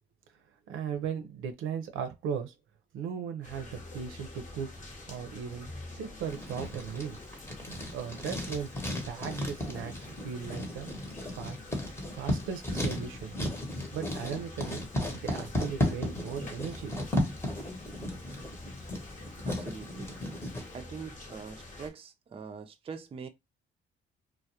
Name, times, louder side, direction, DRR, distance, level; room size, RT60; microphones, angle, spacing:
voice 1, 0.7-2.5 2.9-4.7 5.1-5.7 5.9-7.2 7.9-8.7 9.1-10.9 11.2-11.6 12.1-13.3 13.9-14.8 15.1-16.9, right 7 dB, 85° right, 0.5 m, -37 dB
sound 1, 3.4-21.9, left 2 dB, 40° left, 0.8 m, -46 dB
Writing, 6.3-20.7, left 1 dB, 10° left, 0.9 m, -35 dB
voice 2, 19.4-20.1 20.7-23.3, right 5 dB, 30° right, 0.4 m, -43 dB
2.2 x 2.1 x 2.7 m
cardioid pair, 90°, 20 cm